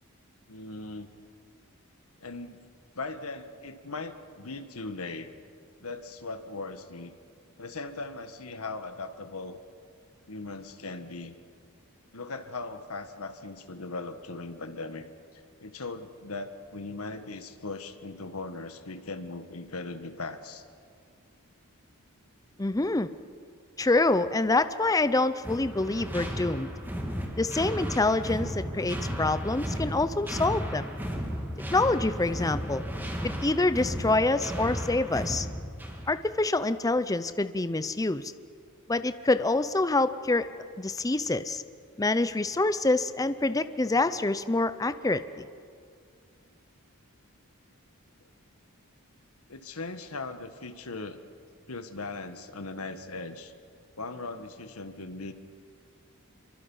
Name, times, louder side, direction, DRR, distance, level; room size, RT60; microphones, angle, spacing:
voice 1, 0.5-1.1 2.2-2.6 2.9-5.3 5.8-7.1 7.6-9.6 10.3-11.4 12.1-20.6 49.5-51.2 51.7-53.5 54.0-55.3, left 3 dB, 80° left, 9 dB, 1.5 m, -39 dB
voice 2, 22.6-23.1 23.8-26.7 27.4-30.9 31.7-32.8 33.2-35.5 36.1-38.3 38.9-40.5 40.8-41.6 42.0-45.5, left 2 dB, 15° left, 13 dB, 0.5 m, -26 dB
sound 1, 25.4-36.2, equal, 10° right, 2.4 m, -34 dB
26.0 x 23.5 x 5.6 m, 2.3 s
head